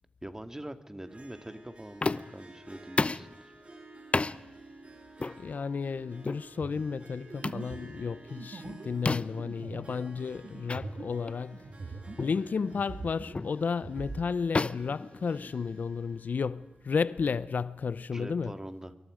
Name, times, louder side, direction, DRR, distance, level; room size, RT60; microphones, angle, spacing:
voice 1, 0.2-3.5 18.1-18.9, right 1 dB, 15° right, 2.0 m, -43 dB
Harp, 1.0-17.5, right 2 dB, 45° right, 5.4 m, -53 dB
sound 1, 2.0-2.4 3.0-3.3 4.1-4.4 5.2-5.4 6.2-6.4 7.4-7.7 9.1-9.4 10.7-10.8 11.3-11.4 12.2-12.4 13.3-13.6 14.5-15.8, left 3 dB, 45° left, 0.8 m, -31 dB
voice 2, 5.4-11.6 12.2-18.5, left 5 dB, 75° left, 0.7 m, -32 dB
sound 2, 6.6-12.4 12.6-14.2, right 3 dB, 75° right, 3.2 m, -43 dB
26.5 x 23.5 x 5.1 m
cardioid pair, 55°, 3 cm